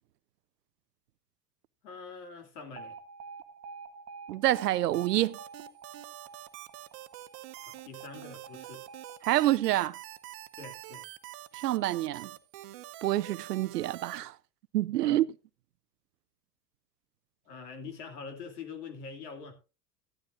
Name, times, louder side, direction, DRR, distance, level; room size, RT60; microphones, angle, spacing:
voice 1, 1.8-3.0 7.6-8.8 10.6-11.0 15.0-15.2 17.5-19.5, left 5 dB, 75° left, 2.7 m, -44 dB
Alarm, 2.8-10.8, right 5 dB, 35° right, 1.2 m, -49 dB
voice 2, 4.3-5.4 9.2-10.0 11.6-12.3 13.0-14.4 14.7-15.3, right 14 dB, 80° right, 0.6 m, -27 dB
sound 1, 4.5-14.2, right 16 dB, 55° right, 1.1 m, -46 dB
14.0 x 12.5 x 2.6 m
hypercardioid pair, 90°, 47 cm